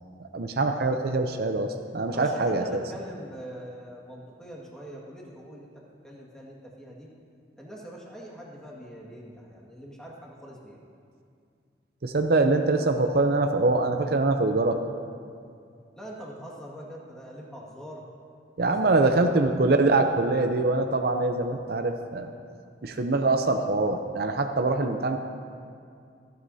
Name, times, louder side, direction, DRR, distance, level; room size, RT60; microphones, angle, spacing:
voice 1, 0.3-2.8 12.0-14.8 18.6-22.3 22.8-25.2, right 2 dB, 60° right, 6 dB, 0.6 m, -24 dB
voice 2, 2.1-5.7 6.0-7.1 7.6-10.9 16.0-18.0 18.7-19.3, equal, 5° left, -4 dB, 1.9 m, -42 dB
26.5 x 9.3 x 2.8 m, 2.3 s
head